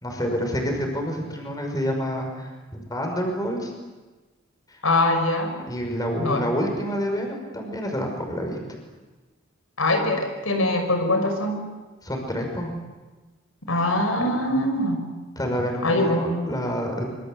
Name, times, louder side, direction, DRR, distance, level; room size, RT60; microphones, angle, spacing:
voice 1, 0.0-3.7 4.7-4.8 5.7-8.8 12.0-12.7 15.4-17.0, equal, 20° left, 2 dB, 5.8 m, -28 dB
voice 2, 4.8-5.6 6.2-6.4 9.8-11.6 13.7-15.0 15.8-16.2, left 1 dB, 85° left, 5 dB, 5.9 m, -22 dB
26.5 x 25.5 x 8.0 m, 1.2 s
head